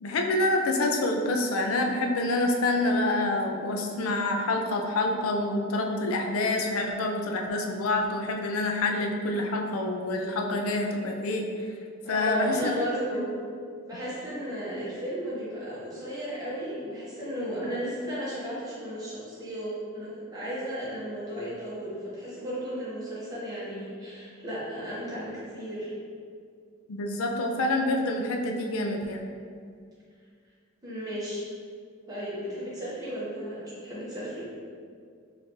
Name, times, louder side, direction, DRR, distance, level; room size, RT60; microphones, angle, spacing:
voice 1, 0.0-11.5 12.1-12.7 13.1-13.2 26.9-29.2, left 2 dB, 85° left, 3 dB, 0.4 m, -27 dB
voice 2, 12.0-13.4 13.9-25.9 30.8-31.4 32.1-34.4, equal, 15° right, -10 dB, 1.0 m, -34 dB
4.2 x 2.5 x 3.0 m, 2.2 s
head